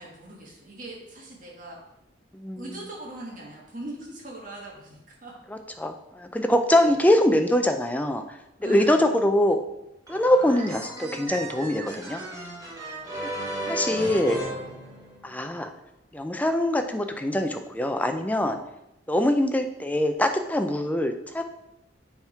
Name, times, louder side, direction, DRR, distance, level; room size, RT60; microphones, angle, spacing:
voice 1, 0.0-1.8 2.6-5.3 6.7-7.0 8.6-9.3 13.4-14.7 19.3-19.4, right 1 dB, 45° right, -3 dB, 1.6 m, -41 dB
voice 2, 5.8-9.6 10.1-12.2 13.7-14.4 15.2-15.7 16.1-18.6 19.1-21.4, left 1 dB, 10° left, 6 dB, 0.4 m, -23 dB
sound 1, 10.1-15.5, right 1 dB, 20° right, 1.2 m, -35 dB
6.9 x 3.6 x 4.5 m, 0.88 s
head